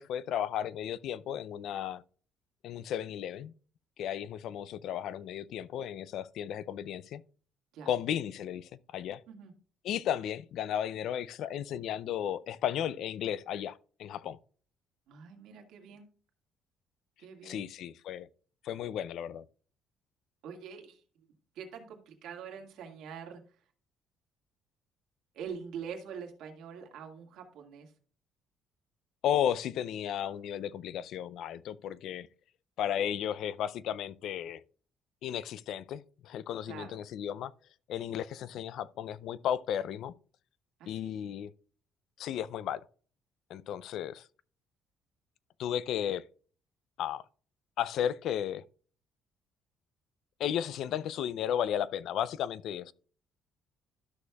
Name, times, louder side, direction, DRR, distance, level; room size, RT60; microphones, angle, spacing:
voice 1, 0.0-2.0 2.6-3.5 4.0-7.2 7.9-9.2 9.8-14.4 17.4-18.3 18.6-19.4 29.2-32.3 32.8-34.6 35.2-37.5 37.9-40.1 40.9-41.5 42.2-42.8 43.5-44.3 45.6-46.2 47.0-47.2 47.8-48.6 50.4-52.9, left 10 dB, 65° left, 0.4 m, -34 dB
voice 2, 15.1-16.1 17.2-17.7 20.4-21.0 21.5-23.6 25.3-27.9 36.7-37.0 40.8-41.1, right 7 dB, 75° right, 1.9 m, -44 dB
12.5 x 6.3 x 2.3 m
cardioid pair, 145°, 0 cm